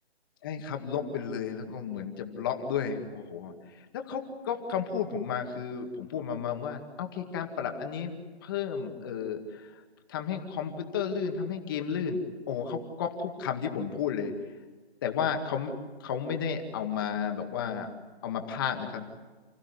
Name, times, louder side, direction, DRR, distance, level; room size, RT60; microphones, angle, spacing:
voice 1, 0.4-9.8 10.1-12.2 12.5-14.3 15.0-15.7 16.0-17.9 18.2-19.1, left 7 dB, 20° left, 5 dB, 2.0 m, -33 dB
30.0 x 15.5 x 9.8 m, 1.3 s
hypercardioid pair, 165°, 33 cm